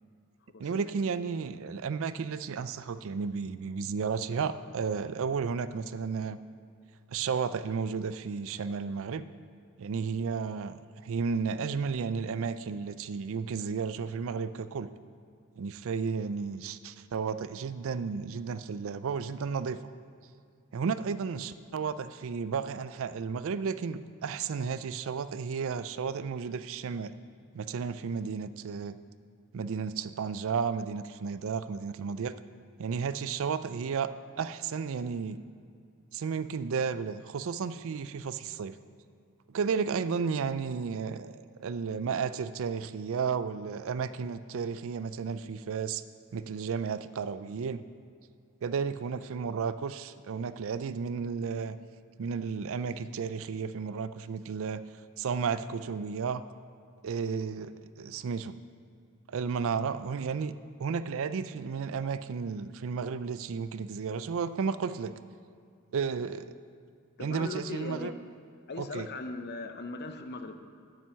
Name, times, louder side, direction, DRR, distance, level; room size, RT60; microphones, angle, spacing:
voice 1, 0.6-6.4 7.1-9.2 9.8-14.9 15.6-19.8 20.7-27.1 27.5-29.0 29.5-32.4 32.8-34.1 34.4-35.4 36.1-38.8 39.5-46.0 46.3-47.8 48.6-51.8 52.2-54.8 55.2-56.4 57.0-58.5 59.3-60.5 60.8-65.1 65.9-66.5 67.2-68.1 68.8-69.1, right 5 dB, 65° right, 13 dB, 0.4 m, -33 dB
voice 2, 67.2-68.1 68.7-70.6, left 3 dB, 50° left, 7 dB, 0.7 m, -39 dB
9.1 x 9.0 x 5.7 m, 2.3 s
head